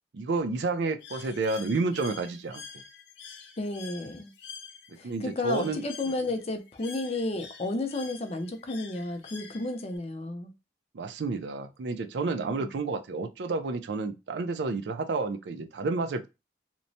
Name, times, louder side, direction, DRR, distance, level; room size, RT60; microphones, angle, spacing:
voice 1, 0.1-2.6 5.0-5.8 10.9-16.3, right 3 dB, 80° right, 0.4 m, -30 dB
Bird, 1.0-10.0, left 6 dB, 85° left, 0.6 m, -47 dB
voice 2, 3.6-4.3 5.0-10.5 12.5-12.7, left 2 dB, 35° left, 0.5 m, -32 dB
3.0 x 2.1 x 2.6 m
head